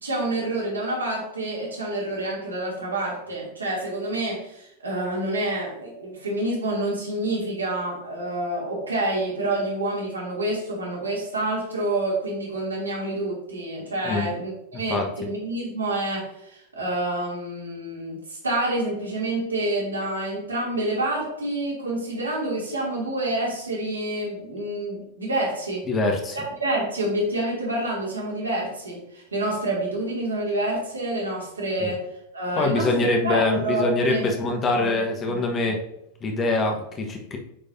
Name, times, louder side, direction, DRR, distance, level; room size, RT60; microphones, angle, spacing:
voice 1, 0.0-25.8 26.3-32.0 32.3-35.8, right 1 dB, 75° right, -4 dB, 2.6 m, -28 dB
voice 2, 25.9-26.4 31.8-31.9 32.6-35.8 36.2-37.4, left 2 dB, 25° left, 2 dB, 1.2 m, -24 dB
8.6 x 5.1 x 2.7 m, 0.80 s
figure-of-eight pair, 90°, 0 cm